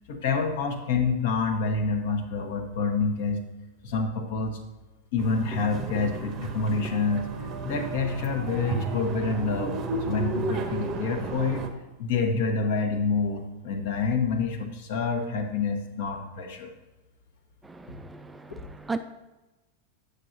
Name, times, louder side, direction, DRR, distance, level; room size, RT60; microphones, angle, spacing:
voice 1, 0.1-3.4 3.8-4.6 5.1-7.2 7.6-11.7 12.0-16.7, left 4 dB, 55° left, 6 dB, 0.9 m, -27 dB
sound 1, 5.2-11.7, right 3 dB, 30° right, 0.7 m, -33 dB
voice 2, 17.6-19.0, right 4 dB, 10° right, 9 dB, 0.3 m, -36 dB
8.8 x 6.5 x 2.6 m, 1.1 s
figure-of-eight pair, 90°, 0 cm